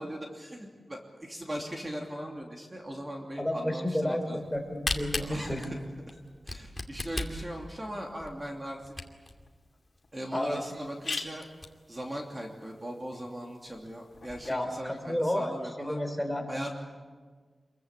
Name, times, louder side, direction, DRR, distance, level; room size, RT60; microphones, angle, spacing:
voice 1, 0.0-4.4 5.1-5.8 6.1-6.2 6.4-8.9 10.1-11.5 11.9-16.0 16.5-16.7, equal, 20° right, 0 dB, 2.9 m, -39 dB
voice 2, 3.4-4.3 4.5-5.6 10.3-10.6 14.5-15.5 15.8-16.4, left 1 dB, 5° left, 4 dB, 3.8 m, -31 dB
Camera, 4.5-9.4 10.0-10.1 10.3-10.4 10.8-10.9 11.3-11.6, left 2 dB, 20° left, 2.4 m, -36 dB
sound 1, 9.5-9.6 10.0-10.1 10.3-10.4 10.8-14.5, left 4 dB, 60° left, 2.7 m, -43 dB
27.5 x 22.5 x 8.4 m, 1.5 s
wide cardioid pair, 115°, 0 cm